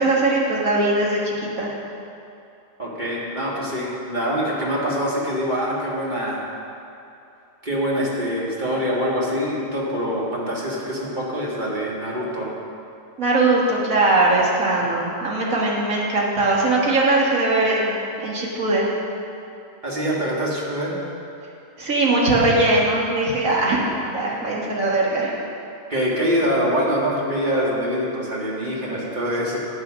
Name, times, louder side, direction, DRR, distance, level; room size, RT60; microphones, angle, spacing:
voice 1, 0.0-1.7 13.2-18.9 21.8-23.8 24.1-25.4, right 2 dB, 90° right, -4 dB, 2.1 m, -20 dB
voice 2, 2.8-6.5 7.6-12.5 19.8-20.9 24.3-24.4 25.9-29.6, equal, 35° right, -5 dB, 2.2 m, -24 dB
9.4 x 8.7 x 6.3 m, 2.8 s
omnidirectional pair, 1.4 m